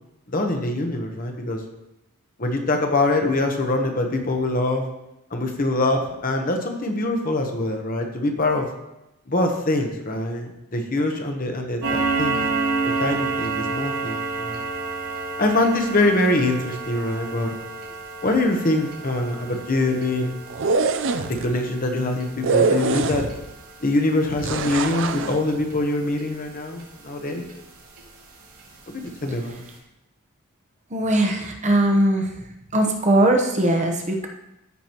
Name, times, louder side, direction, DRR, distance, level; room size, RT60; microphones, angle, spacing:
voice 1, 0.3-1.6 2.4-4.8 5.3-8.7 9.3-12.4 13.0-14.6 15.4-17.6 18.2-20.3 21.3-23.2 23.8-27.5 28.9-29.6, left 2 dB, 40° left, 3 dB, 1.1 m, -24 dB
sound 1, 11.8-26.9 27.3-27.5 28.0-28.1 28.5-28.6 29.1-29.2 29.4-29.6, right 3 dB, 90° right, 2.8 m, -30 dB
sound 2, 20.5-21.5 22.4-23.5 24.4-25.4, right 4 dB, 60° right, 0.6 m, -23 dB
voice 2, 30.9-32.3 32.7-34.3, right 1 dB, 35° right, 2 dB, 1.0 m, -20 dB
14.0 x 6.0 x 3.0 m, 0.88 s
head